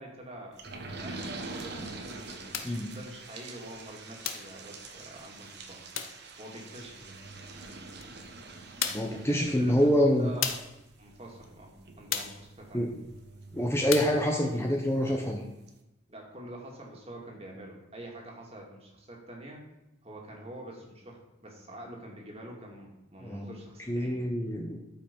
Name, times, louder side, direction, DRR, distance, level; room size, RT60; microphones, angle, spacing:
voice 1, 0.0-5.8 6.4-7.2 9.1-10.5 11.0-12.8 16.1-19.6 20.0-24.2, right 1 dB, 30° right, -1 dB, 2.2 m, -46 dB
sound 1, 0.6-14.9 15.3-15.4 15.7-15.8, right 3 dB, 55° right, 1.3 m, -45 dB
sound 2, 2.5-2.8 4.2-4.6 5.9-6.2 8.0-8.1 8.8-9.2 10.4-10.8 12.1-12.4 13.9-14.2, left 8 dB, 75° left, 0.9 m, -33 dB
voice 2, 2.6-3.0 8.9-10.3 12.7-12.9 13.5-15.4 23.2-23.5 23.9-24.8, equal, 10° left, 1 dB, 0.8 m, -26 dB
13.0 x 5.6 x 5.3 m, 0.98 s
head